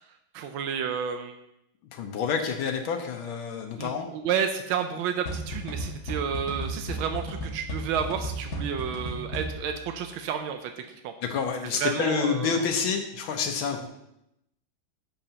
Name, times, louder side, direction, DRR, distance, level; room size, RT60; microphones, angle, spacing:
voice 1, 0.3-1.4 3.8-11.1 11.6-12.6, right 7 dB, 85° right, 6 dB, 1.5 m, -31 dB
voice 2, 1.9-4.1 11.2-13.9, left 6 dB, 85° left, 3 dB, 1.7 m, -28 dB
sound 1, 5.3-9.9, equal, 50° left, 1.6 m, -34 dB
11.5 x 7.8 x 2.9 m, 0.82 s
omnidirectional pair, 2.2 m